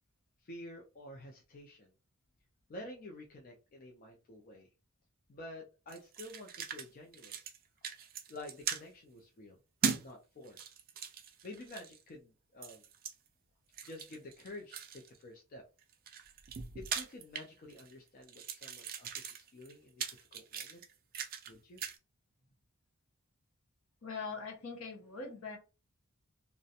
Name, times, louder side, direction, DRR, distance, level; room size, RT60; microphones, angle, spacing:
voice 1, 0.4-1.9 2.7-4.7 5.3-7.4 8.3-9.6 10.0-10.7 11.4-12.9 13.8-15.6 16.8-20.8 21.5-21.8, left 1 dB, 40° left, 0.4 m, -50 dB
sound 1, 5.9-6.9 7.1-7.6 7.8-8.8 9.8-10.1 10.5-12.0 12.6-13.1 13.7-15.2 15.8-17.9 18.2-21.5 21.8-22.0, right 7 dB, 40° right, 0.4 m, -40 dB
voice 2, 24.0-25.6, left 4 dB, 70° left, 0.8 m, -42 dB
2.4 x 2.1 x 2.7 m
head